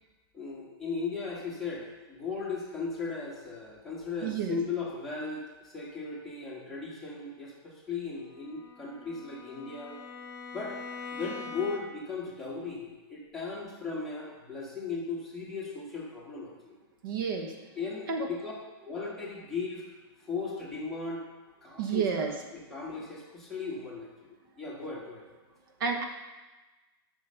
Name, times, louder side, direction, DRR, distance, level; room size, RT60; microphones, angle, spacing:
voice 1, 0.3-10.0 10.5-10.8 11.1-16.8 17.7-18.5 18.8-19.8 20.3-21.3 21.6-25.3, left 4 dB, ahead, -7 dB, 1.6 m, -37 dB
voice 2, 4.2-4.6 17.0-17.5 18.1-18.3 21.8-22.3 25.8-26.0, right 6 dB, 60° right, 4 dB, 1.1 m, -30 dB
Bowed string instrument, 8.3-12.2, left 5 dB, 30° left, 1.7 m, -43 dB
8.2 x 6.4 x 5.6 m, 1.1 s
supercardioid pair, 170°, 13 cm